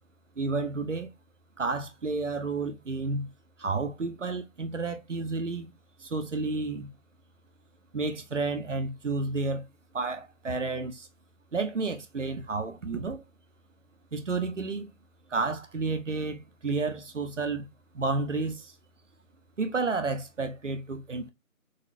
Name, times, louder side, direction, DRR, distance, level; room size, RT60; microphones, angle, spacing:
voice 1, 0.4-1.1 1.6-3.3 3.6-5.7 6.0-6.9 7.9-9.6 9.9-11.1 11.5-13.2 14.1-14.9 15.3-17.7 17.9-18.7 19.6-21.3, right 3 dB, 55° right, 0.6 m, -31 dB
4.0 x 2.1 x 2.5 m
figure-of-eight pair, 170°, 43 cm